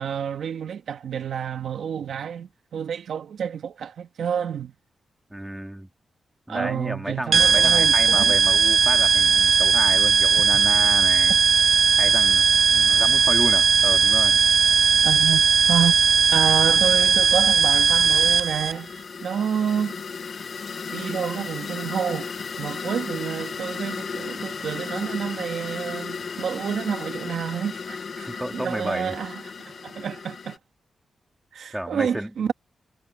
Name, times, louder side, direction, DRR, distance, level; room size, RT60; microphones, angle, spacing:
voice 1, 0.0-4.7 6.5-8.3 10.4-10.6 15.0-15.9 16.3-18.9 19.2-20.0 20.9-30.6 31.5-32.5, right 8 dB, 85° right, 1.7 m, -29 dB
voice 2, 5.3-5.9 6.5-11.4 12.0-14.4 28.2-29.1 31.7-32.5, right 1 dB, 5° right, 3.0 m, -31 dB
sound 1, 7.3-18.7, right 6 dB, 55° right, 0.3 m, -18 dB
sound 2, 17.2-30.6, left 5 dB, 50° left, 1.0 m, -35 dB
wide cardioid pair, 125°, 0 cm